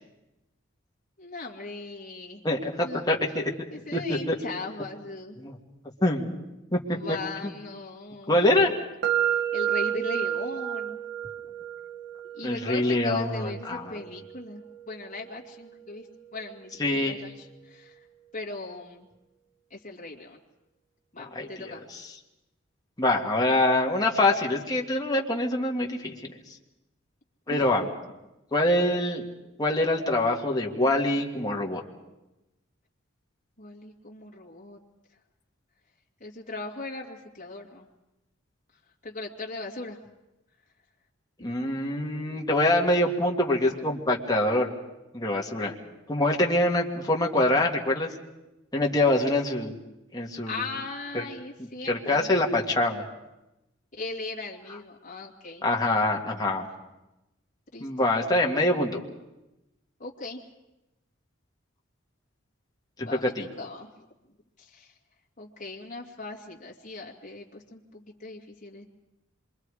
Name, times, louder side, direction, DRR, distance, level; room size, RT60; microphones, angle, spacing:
voice 1, 1.2-2.4 2.8-3.0 3.7-5.4 6.9-8.5 9.5-11.0 12.3-16.1 16.3-18.0 18.3-19.1 19.7-20.4 21.1-21.8 27.5-27.9 33.6-34.8 36.2-37.9 39.0-40.0 41.4-41.5 50.5-52.4 53.9-55.6 57.7-58.1 60.0-60.4 63.0-63.9 64.6-64.9 65.4-68.9, left 3 dB, 40° left, -2 dB, 2.4 m, -38 dB
voice 2, 2.4-3.5 3.9-4.4 5.4-5.6 6.0-6.3 6.7-7.0 7.4-7.5 8.3-8.7 12.4-14.1 16.8-17.2 21.3-22.0 23.0-26.1 27.5-27.9 28.5-29.3 29.6-31.8 41.4-44.7 45.1-45.7 46.1-48.1 48.7-49.8 50.1-50.6 51.1-51.2 51.8-53.0 55.6-56.7 57.8-59.0 63.0-63.5, left 1 dB, 20° left, -1 dB, 2.0 m, -25 dB
sound 1, 9.0-16.9, right 10 dB, 55° right, 1.4 m, -32 dB
27.0 x 23.5 x 4.9 m, 0.97 s
head